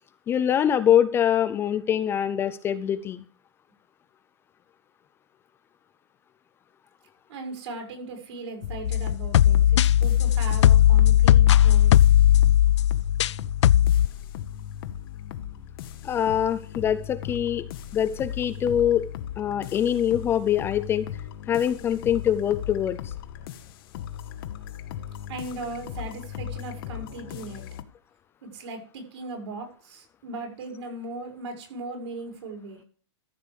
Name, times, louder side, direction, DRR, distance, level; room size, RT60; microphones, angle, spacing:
voice 1, 0.3-3.2 16.0-17.7 17.9-19.1 19.4-21.1 21.5-23.1, left 9 dB, 15° left, 12 dB, 0.4 m, -24 dB
voice 2, 7.3-11.9 25.3-27.6 28.4-32.8, right 3 dB, 70° right, 2 dB, 5.7 m, -38 dB
sound 1, 8.6-27.8, left 10 dB, 50° left, 1.0 m, -37 dB
sound 2, 8.9-13.3 13.6-14.1, left 12 dB, 75° left, 0.4 m, -17 dB
13.5 x 6.6 x 5.1 m, 0.42 s
hypercardioid pair, 155°, 15 cm